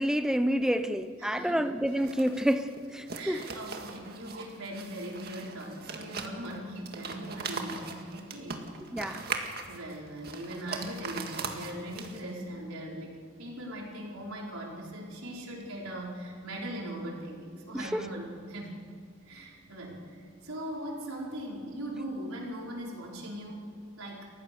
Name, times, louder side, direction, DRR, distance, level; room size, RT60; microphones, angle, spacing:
voice 1, 0.0-3.4 8.9-9.2 17.7-18.0, equal, 5° right, 0.8 m, -28 dB
voice 2, 1.2-1.7 3.2-8.6 9.0-9.3 9.7-18.8 19.2-23.7 24.0-24.3, right 1 dB, 90° right, 4.8 m, -40 dB
sound 1, 1.9-12.4, right 4 dB, 50° right, 1.9 m, -40 dB
29.5 x 15.0 x 7.0 m
head